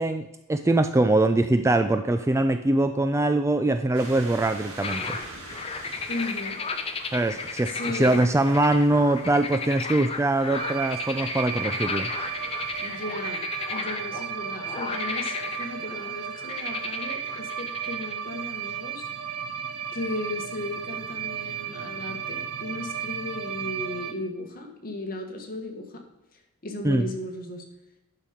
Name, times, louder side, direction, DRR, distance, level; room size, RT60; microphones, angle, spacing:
voice 1, 0.0-5.2 7.1-12.1 26.8-27.1, right 2 dB, 15° right, 9 dB, 0.3 m, -23 dB
sound 1, 3.9-13.0, right 2 dB, 60° right, 2.3 m, -45 dB
sound 2, 4.8-18.1, left 4 dB, 25° left, 0.8 m, -34 dB
voice 2, 6.1-6.6 7.7-8.3 12.8-13.4 13.7-19.0 19.9-26.0 26.6-27.6, left 1 dB, 40° left, 3 dB, 1.5 m, -35 dB
sound 3, 10.5-24.1, right 8 dB, 80° right, 0.7 m, -34 dB
10.0 x 5.9 x 5.1 m, 1.0 s
head